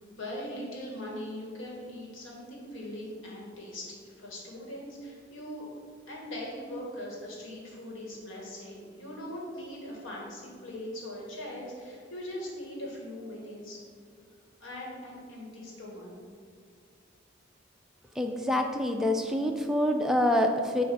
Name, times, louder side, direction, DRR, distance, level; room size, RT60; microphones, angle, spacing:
voice 1, 0.0-5.7 6.1-13.8 14.6-16.1, left 1 dB, 80° left, -3 dB, 1.5 m, -40 dB
voice 2, 18.2-20.8, left 1 dB, ahead, 3 dB, 0.4 m, -26 dB
7.4 x 2.5 x 5.4 m, 2.2 s
head